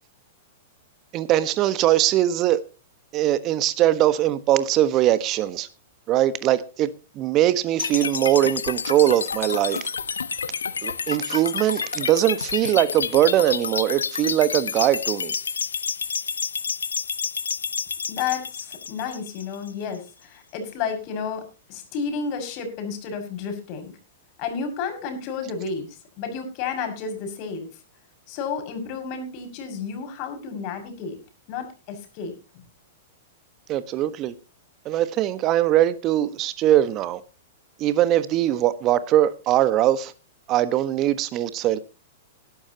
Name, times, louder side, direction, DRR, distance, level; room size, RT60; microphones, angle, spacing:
voice 1, 1.1-2.6 3.1-5.7 6.1-6.9 7.2-9.9 10.8-15.3 33.7-34.3 34.8-37.2 37.8-40.1 40.5-41.8, right 13 dB, 35° right, 1.3 m, -21 dB
sound 1, 7.8-19.8, left 6 dB, 85° left, 1.0 m, -29 dB
voice 2, 18.1-23.9 24.4-27.7 28.3-31.2 31.5-32.6, left 6 dB, 45° left, 6.2 m, -31 dB
19.5 x 12.0 x 2.9 m
hypercardioid pair, 110°, 0 cm